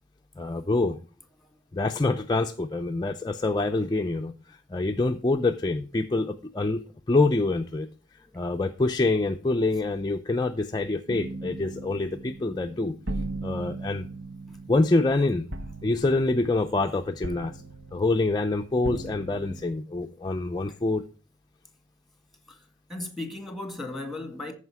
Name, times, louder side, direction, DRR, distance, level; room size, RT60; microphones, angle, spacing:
voice 1, 0.4-1.0 1.7-4.3 4.7-6.8 7.1-7.9 8.3-12.9 13.4-14.1 14.7-15.5 15.8-17.6 17.9-21.0, left 2 dB, 20° left, 0.5 m, -26 dB
sound 1, 11.1-19.6, right 2 dB, 75° right, 1.1 m, -38 dB
voice 2, 22.9-24.5, left 2 dB, ahead, 1.7 m, -37 dB
14.0 x 5.0 x 4.8 m
head